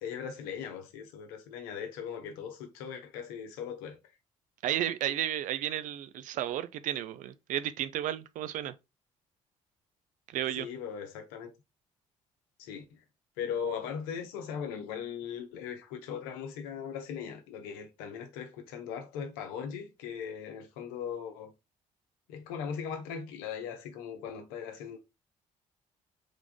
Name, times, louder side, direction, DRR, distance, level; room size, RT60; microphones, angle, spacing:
voice 1, 0.0-4.0 10.6-11.5 12.6-12.8 13.4-21.5 22.3-25.0, left 7 dB, 65° left, 0.9 m, -39 dB
voice 2, 4.6-8.7 10.3-10.7, right 11 dB, 50° right, 0.4 m, -33 dB
3.6 x 3.5 x 3.5 m
figure-of-eight pair, 40°, 17 cm